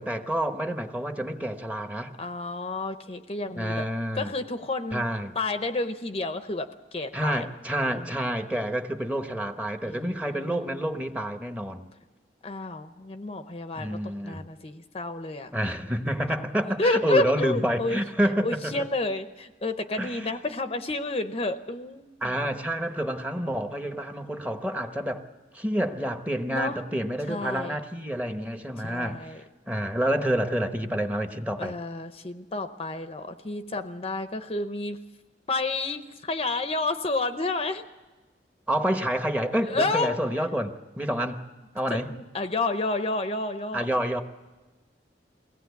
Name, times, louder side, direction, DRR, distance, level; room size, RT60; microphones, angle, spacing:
voice 1, 0.0-2.1 3.6-4.3 4.9-5.3 7.1-11.9 13.8-14.4 15.5-18.8 20.0-20.3 22.2-25.2 25.5-29.4 29.7-31.7 38.7-41.4 41.7-42.1 43.7-44.2, right 1 dB, 10° right, 7 dB, 1.0 m, -28 dB
voice 2, 2.2-3.9 4.1-5.0 5.3-7.5 7.9-8.1 9.8-10.9 12.4-15.5 16.8-18.0 18.4-22.4 26.5-26.8 27.3-27.8 28.8-29.4 31.6-35.0 35.5-37.8 39.7-40.2 41.1-41.2 41.9-43.9, left 2 dB, 35° left, 9 dB, 0.7 m, -30 dB
22.5 x 17.5 x 8.2 m, 1.3 s
head